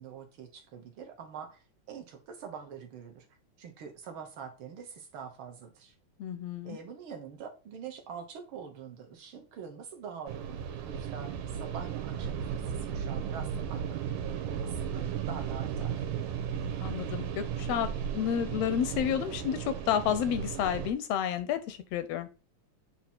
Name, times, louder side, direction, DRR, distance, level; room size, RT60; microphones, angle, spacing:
voice 1, 0.0-3.3 3.6-5.9 6.6-16.0, right 7 dB, 65° right, 1.3 m, -45 dB
voice 2, 6.2-6.8 16.8-22.3, left 9 dB, 80° left, 1.5 m, -31 dB
sound 1, 10.3-20.9, right 8 dB, 85° right, 2.2 m, -35 dB
8.2 x 2.9 x 4.3 m
omnidirectional pair, 3.4 m